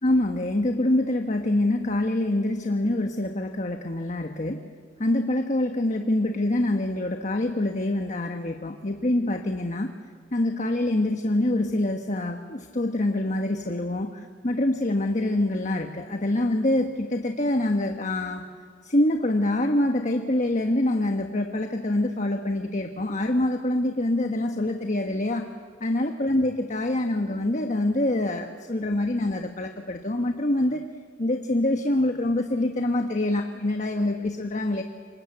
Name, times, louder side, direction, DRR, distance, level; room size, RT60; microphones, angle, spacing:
voice 1, 0.0-4.6 5.0-9.9 10.3-18.4 18.8-25.5 25.8-30.9 31.2-34.8, left 1 dB, 40° left, 5 dB, 1.3 m, -25 dB
28.0 x 25.5 x 8.0 m, 2.1 s
head